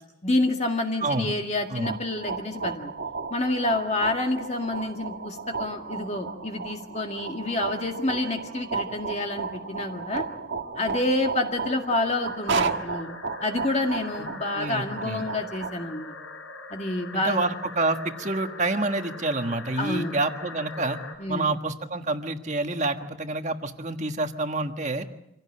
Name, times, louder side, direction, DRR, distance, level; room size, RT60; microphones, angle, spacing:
voice 1, 0.2-2.9 3.3-10.2 10.8-16.1 16.7-17.5 19.8-20.1 21.2-21.5, left 2 dB, 30° left, 3 dB, 2.0 m, -28 dB
voice 2, 1.0-1.3 1.7-2.0 14.2-14.3 14.5-15.3 17.1-21.0 21.3-25.0, right 2 dB, 35° right, 6 dB, 1.5 m, -28 dB
sound 1, 1.7-15.7, right 4 dB, 65° right, 1.5 m, -34 dB
sound 2, 3.5-21.2, left 3 dB, 80° left, 4.2 m, -44 dB
26.0 x 16.5 x 8.7 m, 0.84 s
head